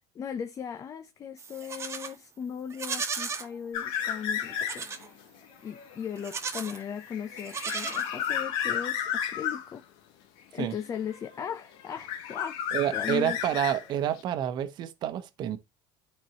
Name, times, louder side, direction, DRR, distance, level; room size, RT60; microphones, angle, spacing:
voice 1, 0.1-5.2 5.6-9.8 10.5-12.6 12.9-13.4, left 7 dB, 35° left, 0.7 m, -37 dB
Livestock farm animals working animals, 1.4-2.2 2.7-3.5 4.6-5.1 6.2-6.8 7.4-8.4, right 5 dB, 30° right, 1.3 m, -35 dB
sound 1, 3.7-5.0 5.4-9.7 10.7-11.5 11.8-14.2, left 9 dB, 65° left, 1.4 m, -33 dB
voice 2, 12.7-15.6, right 10 dB, 55° right, 1.0 m, -29 dB
12.0 x 4.5 x 2.9 m
supercardioid pair, 110°, 9 cm